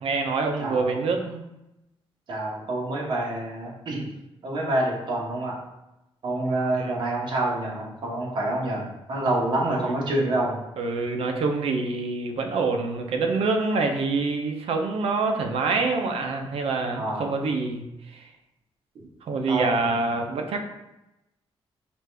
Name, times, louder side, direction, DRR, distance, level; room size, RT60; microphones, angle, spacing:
voice 1, 0.0-1.4 6.8-7.0 9.7-9.9 10.8-17.9 18.1-18.2 19.2-20.8, right 3 dB, 80° right, 4 dB, 0.6 m, -26 dB
voice 2, 0.6-1.0 2.3-4.0 4.4-5.5 6.2-10.6 16.9-17.3 19.5-19.7, right 1 dB, 50° right, -4 dB, 1.1 m, -27 dB
5.1 x 2.5 x 3.3 m, 0.94 s
wide cardioid pair, 150°, 10 cm